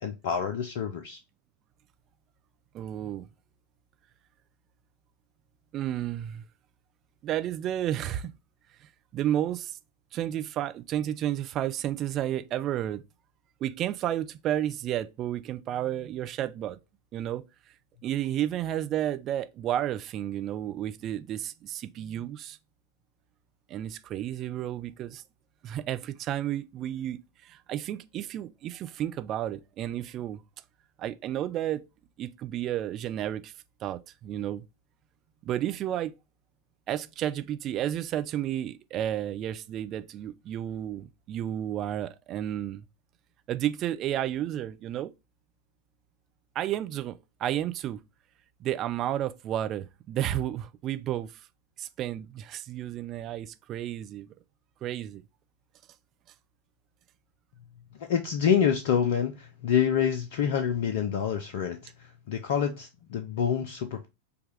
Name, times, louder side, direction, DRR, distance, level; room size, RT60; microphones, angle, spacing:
voice 1, 0.0-1.2 58.0-64.1, left 8 dB, 55° left, 0.5 m, -27 dB
voice 2, 2.7-3.3 5.7-6.4 7.2-8.3 9.1-9.8 10.1-13.0 13.6-16.8 17.1-17.4 18.0-22.6 23.7-25.2 25.6-30.4 31.0-31.8 32.2-33.5 33.8-34.6 35.4-36.1 36.9-42.8 43.5-45.1 46.6-48.0 48.6-51.3 51.8-54.3 54.8-55.2, right 11 dB, 35° right, 0.4 m, -32 dB
5.2 x 2.3 x 3.3 m
figure-of-eight pair, 90°, 0 cm